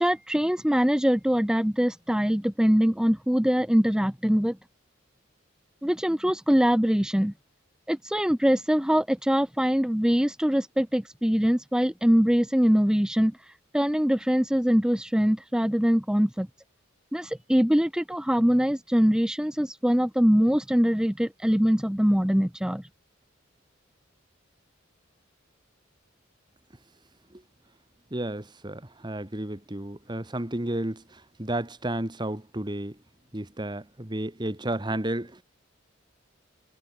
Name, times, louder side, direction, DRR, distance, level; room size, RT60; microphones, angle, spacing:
voice 1, 0.0-4.6 5.8-7.3 7.9-16.5 17.1-22.9, equal, 5° right, 0.6 m, -23 dB
voice 2, 28.1-33.0 33.3-35.4, right 1 dB, 20° right, 1.5 m, -32 dB
head